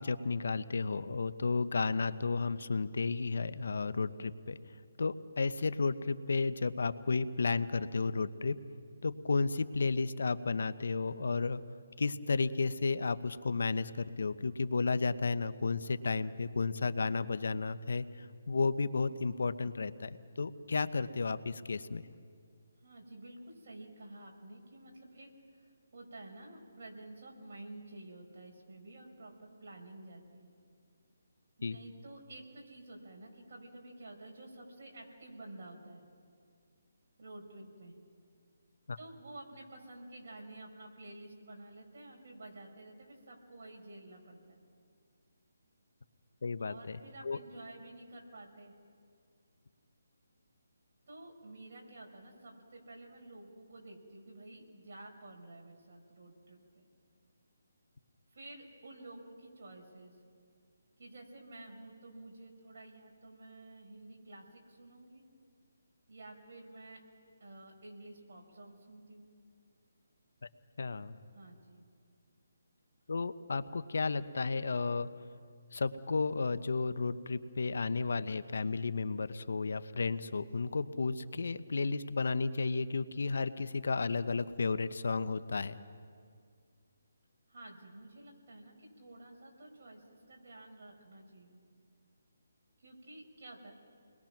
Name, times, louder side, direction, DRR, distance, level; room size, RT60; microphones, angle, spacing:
voice 1, 0.0-4.6 5.0-8.6 9.0-11.6 12.0-22.0 31.6-31.8 38.9-39.0 46.4-47.0 47.2-47.4 70.8-71.2 73.1-75.1 75.7-85.8, left 4 dB, 70° left, 13 dB, 0.9 m, -33 dB
voice 2, 22.8-30.5 31.6-36.0 37.2-37.9 39.0-44.6 46.6-48.8 51.1-56.9 58.3-60.2 61.0-65.3 66.1-67.0 67.4-69.3 71.3-71.8 87.5-91.6 92.8-93.7, right 2 dB, 55° right, 0 dB, 5.4 m, -51 dB
30.0 x 21.0 x 6.0 m, 2.2 s
hypercardioid pair, 160°, 0 cm